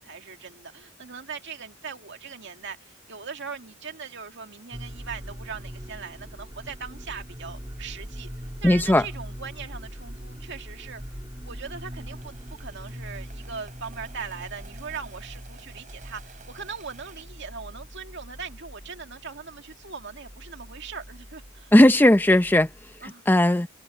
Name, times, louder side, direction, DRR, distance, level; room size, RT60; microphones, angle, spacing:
voice 1, 0.0-11.2 11.4-21.7 23.0-23.2, right 6 dB, 60° right, 2.4 m, -40 dB
sound 1, 4.7-23.1, equal, 20° right, 2.2 m, -42 dB
voice 2, 8.6-9.1 21.7-23.7, left 1 dB, 10° left, 0.6 m, -18 dB
sound 2, 11.7-17.2, right 5 dB, 40° right, 6.8 m, -53 dB
head